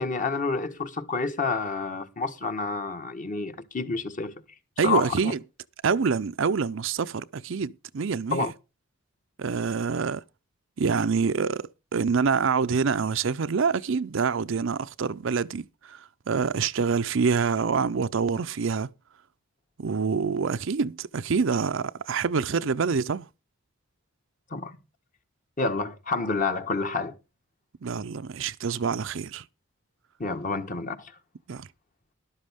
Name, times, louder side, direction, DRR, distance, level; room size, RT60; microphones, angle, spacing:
voice 1, 0.0-4.3 4.8-5.3 8.3-8.5 24.5-24.8 25.6-27.2 30.2-31.1, left 3 dB, 40° left, 1.3 m, -29 dB
voice 2, 4.8-5.4 5.8-8.5 9.4-10.2 10.8-18.9 19.8-23.3 27.8-29.4 31.5-31.7, right 5 dB, 60° right, 0.5 m, -26 dB
13.0 x 12.0 x 3.5 m
head